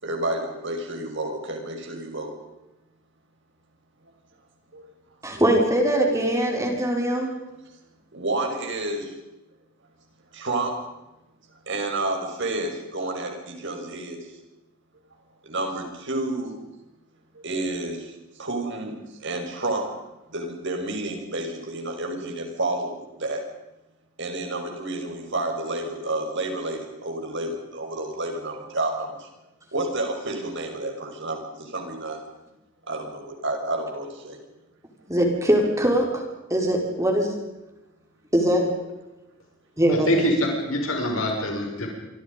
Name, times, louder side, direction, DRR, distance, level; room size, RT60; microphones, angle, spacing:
voice 1, 0.0-2.3 4.7-4.9 8.1-9.1 10.3-10.8 11.7-14.3 15.4-16.5 17.3-18.9 19.2-19.9 20.3-23.4 24.2-29.3 29.7-32.2 32.9-34.4, right 2 dB, 60° right, 3 dB, 5.9 m, -30 dB
voice 2, 5.2-7.3 35.1-36.2 36.5-37.3 38.3-38.7 39.8-40.1, right 1 dB, 15° right, 1 dB, 5.1 m, -21 dB
voice 3, 39.9-41.9, equal, 80° left, 0 dB, 6.4 m, -24 dB
27.5 x 25.0 x 5.4 m, 0.98 s
head